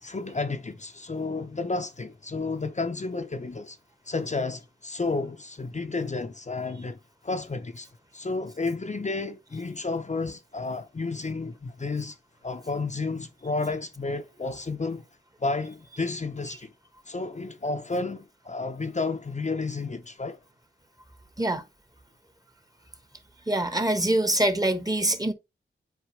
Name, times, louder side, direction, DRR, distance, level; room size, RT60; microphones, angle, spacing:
voice 1, 0.0-3.8 4.1-7.0 7.2-7.9 8.1-12.2 12.4-15.0 15.4-16.7 17.1-20.4, left 3 dB, 35° left, 0.8 m, -31 dB
voice 2, 23.5-25.3, right 1 dB, 20° right, 1.3 m, -24 dB
8.1 x 4.6 x 3.2 m
wide cardioid pair, 65°, 20 cm